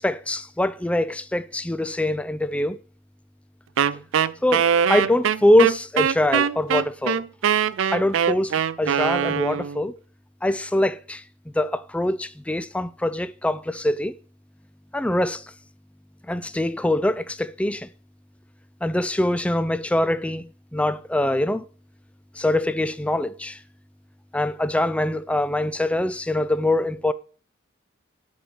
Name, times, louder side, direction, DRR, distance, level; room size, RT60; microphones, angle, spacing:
voice 1, 0.0-2.8 4.4-7.2 7.9-10.0 10.4-11.2 11.5-14.1 14.9-15.4 16.3-17.9 18.8-21.7 22.4-23.6 24.3-27.1, left 1 dB, 5° left, 0.4 m, -23 dB
Wind instrument woodwind instrument, 3.8-9.8, right 8 dB, 85° right, 0.4 m, -22 dB
11.5 x 4.4 x 6.8 m
head